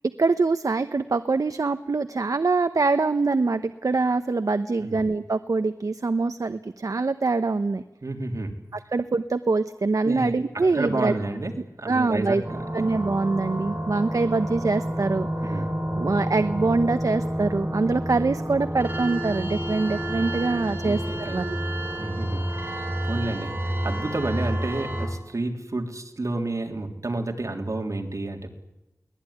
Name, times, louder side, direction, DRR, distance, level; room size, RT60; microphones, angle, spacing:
voice 1, 0.0-7.8 8.9-11.1 11.9-12.4 12.7-15.6 16.0-21.6, right 3 dB, 85° right, 10 dB, 0.9 m, -24 dB
voice 2, 8.0-8.6 10.0-10.4 10.7-12.6 15.4-15.7 20.8-21.4 22.0-28.5, right 2 dB, 70° right, 3 dB, 3.5 m, -30 dB
sound 1, 12.4-25.1, right 1 dB, 35° right, 6.3 m, -29 dB
23.0 x 19.0 x 10.0 m, 0.99 s
wide cardioid pair, 55°, 6 cm